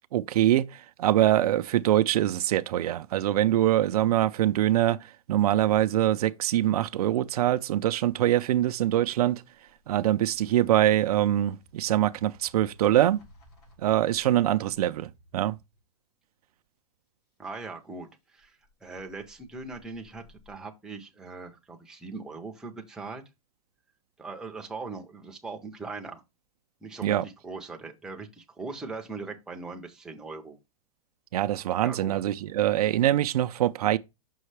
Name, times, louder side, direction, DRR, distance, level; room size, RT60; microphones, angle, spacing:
voice 1, 0.1-9.4 9.9-13.2 13.8-15.6 27.0-27.2 31.3-34.0, right 13 dB, 75° right, 0.4 m, -24 dB
sound 1, 9.5-15.8 18.4-20.5, left 1 dB, 80° left, 3.0 m, -58 dB
voice 2, 17.4-23.2 24.2-26.2 26.8-30.6 31.8-32.2, right 3 dB, 5° right, 0.5 m, -40 dB
5.7 x 5.4 x 3.2 m
supercardioid pair, 160°, 20 cm